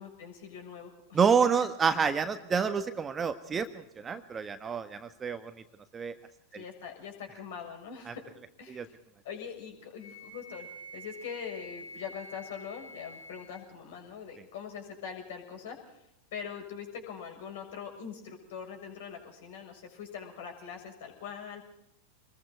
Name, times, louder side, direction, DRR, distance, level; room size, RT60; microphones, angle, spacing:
voice 1, 0.0-1.3 1.6-1.7 4.1-4.3 6.5-8.3 8.6-8.9 9.2-10.7 10.9-16.0 16.3-21.6, left 7 dB, 55° left, 4 dB, 6.7 m, -42 dB
voice 2, 1.1-3.7 4.0-5.5 5.9-6.1 6.5-6.6 8.1-8.2 8.7-8.9, right 6 dB, 20° right, 9 dB, 1.4 m, -28 dB
Wind instrument woodwind instrument, 10.0-13.7, equal, 80° left, 4.9 m, -47 dB
27.0 x 21.5 x 4.6 m, 0.78 s
figure-of-eight pair, 90°, 0 cm